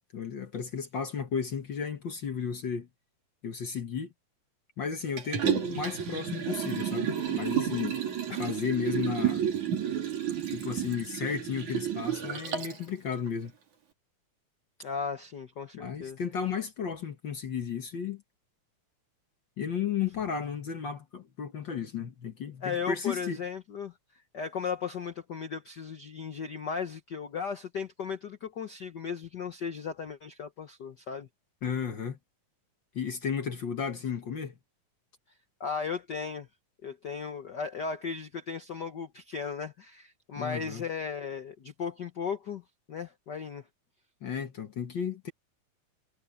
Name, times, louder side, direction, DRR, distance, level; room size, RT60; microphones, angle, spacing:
voice 1, 0.1-2.9 3.4-4.1 4.8-8.0 8.4-9.4 10.5-13.5 15.7-18.2 19.6-23.4 31.6-32.2 32.9-34.5 40.3-40.8 44.2-45.3, left 7 dB, 50° left, 1.5 m, -33 dB
Liquid, 5.2-12.8 13.3-13.4, right 9 dB, 75° right, 4.6 m, -31 dB
voice 2, 14.8-16.2 22.6-23.9 24.3-31.3 35.6-36.5 36.8-42.6 42.9-43.7, left 6 dB, 70° left, 1.0 m, -36 dB
omnidirectional pair, 3.5 m